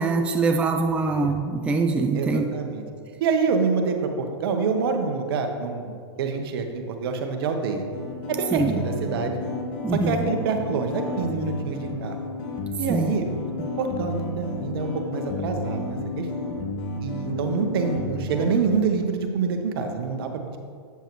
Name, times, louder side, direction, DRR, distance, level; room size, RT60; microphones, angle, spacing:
voice 1, 0.0-2.4 8.5-8.7 9.8-10.3 12.9-13.1, right 3 dB, 10° right, 4 dB, 0.4 m, -23 dB
voice 2, 1.0-1.3 2.1-2.9 3.2-7.8 8.3-9.3 9.9-12.2 12.8-13.2 13.8-16.5 17.0-20.6, right 5 dB, 60° right, 5 dB, 1.0 m, -26 dB
sound 1, 7.9-18.5, left 2 dB, 40° left, 1.2 m, -32 dB
8.2 x 6.9 x 3.1 m, 2.1 s
hypercardioid pair, 120°, 14 cm